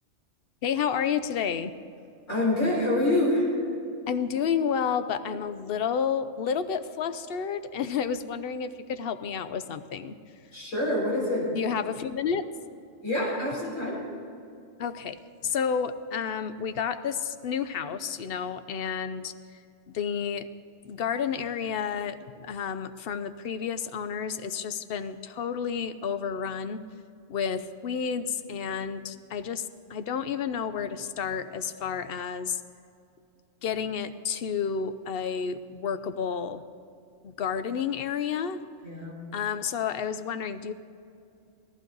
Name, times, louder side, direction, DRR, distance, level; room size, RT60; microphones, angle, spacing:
voice 1, 0.6-1.8 4.1-10.1 11.5-12.5 14.8-19.3 19.9-20.5 20.8-26.8 27.3-32.6 33.6-36.6 37.2-38.6 39.3-40.7, left 7 dB, 55° left, 11 dB, 0.8 m, -30 dB
voice 2, 2.3-3.5 10.5-11.5 13.0-14.0 38.8-39.2, left 1 dB, 85° left, -4 dB, 4.2 m, -26 dB
18.5 x 15.0 x 4.0 m, 2.6 s
omnidirectional pair, 1.3 m